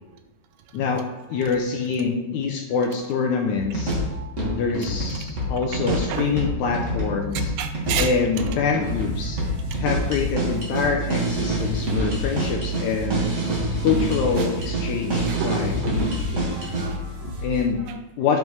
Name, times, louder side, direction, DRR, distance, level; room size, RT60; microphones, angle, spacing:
voice 1, 0.7-1.0 1.3-4.0 4.5-7.5 8.0-9.4 9.8-13.2 13.8-15.9 17.4-17.8 18.2-18.4, left 5 dB, 80° left, 2 dB, 1.8 m, -25 dB
sound 1, 3.6-16.9, right 1 dB, 45° right, 1.0 m, -27 dB
voice 2, 4.1-4.6 5.1-5.2 5.7-6.3 7.6-8.1 8.5-8.6 14.4-14.5 15.3-17.3 17.9-18.0, right 7 dB, 80° right, 7 dB, 2.2 m, -32 dB
sound 2, 8.8-17.6, right 1 dB, 60° right, 2.8 m, -32 dB
8.9 x 5.3 x 3.1 m, 1.0 s
omnidirectional pair, 3.9 m